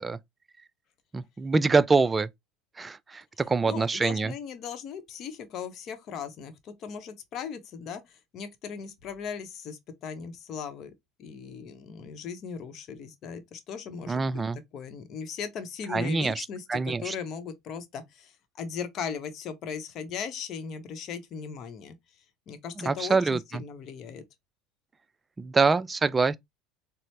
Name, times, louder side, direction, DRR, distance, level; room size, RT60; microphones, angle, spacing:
voice 1, 1.1-2.3 2.8-4.3 14.1-14.6 15.9-17.1 22.8-23.6 25.4-26.4, right 4 dB, 20° right, 0.3 m, -25 dB
voice 2, 3.7-10.9 11.2-14.3 14.7-22.0 22.5-24.2, left 6 dB, 50° left, 0.8 m, -38 dB
4.0 x 2.0 x 3.1 m
hypercardioid pair, 75°, 0 cm